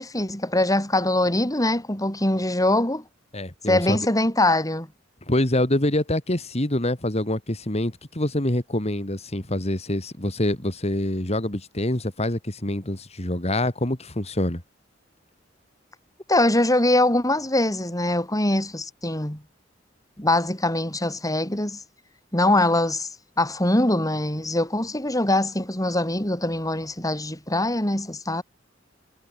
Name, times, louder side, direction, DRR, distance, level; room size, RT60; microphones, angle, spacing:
voice 1, 0.0-3.0 3.7-4.9 16.3-19.4 20.2-21.8 22.3-23.1 23.4-28.4, left 1 dB, 20° left, 6.9 m, -23 dB
voice 2, 3.3-4.1 5.3-14.6, left 1 dB, 35° left, 3.0 m, -25 dB
head